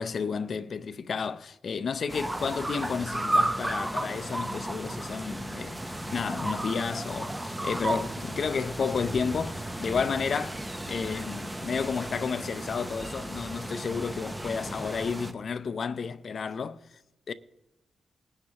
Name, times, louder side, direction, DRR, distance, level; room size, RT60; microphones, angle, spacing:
voice 1, 0.0-5.9 6.1-16.8 17.3-17.4, left 5 dB, 55° left, 0.5 m, -32 dB
sound 1, 2.1-15.3, right 1 dB, 10° right, 0.8 m, -33 dB
19.0 x 9.7 x 2.9 m
wide cardioid pair, 125°, 0 cm